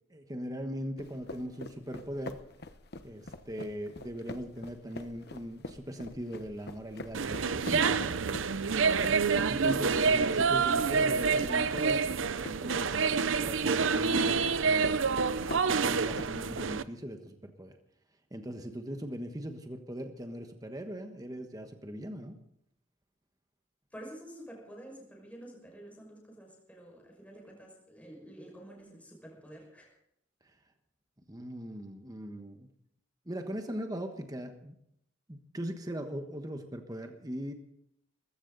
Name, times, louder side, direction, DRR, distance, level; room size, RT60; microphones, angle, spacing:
voice 1, 0.1-2.4 3.0-8.2 9.5-12.1 12.4-13.0 13.3-15.0 15.5-17.8 18.3-22.4 31.3-32.7 33.3-34.7 35.3-37.5, equal, 20° right, 5 dB, 1.2 m, -40 dB
sound 1, 1.0-16.6, left 2 dB, 55° left, 1.0 m, -45 dB
sound 2, 7.1-16.8, right 5 dB, 70° right, 0.7 m, -27 dB
voice 2, 23.9-29.9, right 1 dB, 5° left, -1 dB, 5.7 m, -49 dB
20.0 x 15.5 x 4.0 m, 0.75 s
head